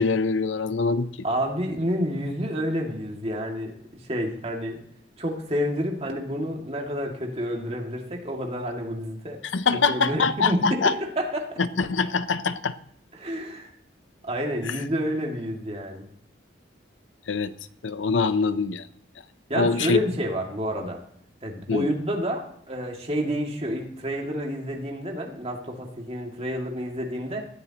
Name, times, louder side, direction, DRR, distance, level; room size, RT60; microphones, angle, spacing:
voice 1, 0.0-1.1 9.5-10.9 11.6-12.8 14.6-14.8 17.3-17.5 17.8-18.9 19.5-20.0 21.7-21.9, left 4 dB, 90° left, 13 dB, 0.7 m, -24 dB
voice 2, 1.2-3.7 4.1-4.8 5.2-9.4 9.7-11.6 13.1-13.7 14.2-16.0 19.5-21.0 21.4-27.4, equal, 35° right, 0 dB, 2.3 m, -29 dB
19.5 x 14.0 x 3.0 m, 0.68 s
head